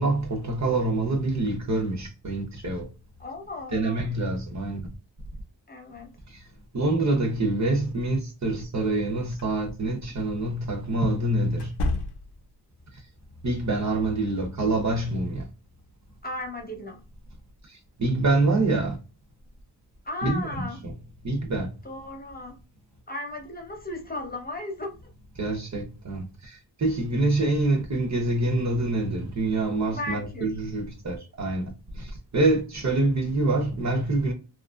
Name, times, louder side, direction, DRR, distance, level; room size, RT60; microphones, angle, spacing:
voice 1, 0.0-2.9 3.7-4.8 6.3-6.4 6.7-11.7 13.4-15.5 18.0-19.0 20.2-20.9 21.2-21.7 25.4-31.6 31.9-34.3, right 2 dB, 40° right, 0.8 m, -26 dB
voice 2, 3.2-4.1 5.7-6.1 16.2-17.0 20.0-20.8 21.8-22.5 23.1-24.9 29.9-30.5, left 2 dB, 20° left, 0.9 m, -35 dB
sound 1, 9.3-9.5 11.5-12.5, left 2 dB, 70° left, 0.7 m, -30 dB
2.8 x 2.5 x 2.4 m
wide cardioid pair, 100°, 42 cm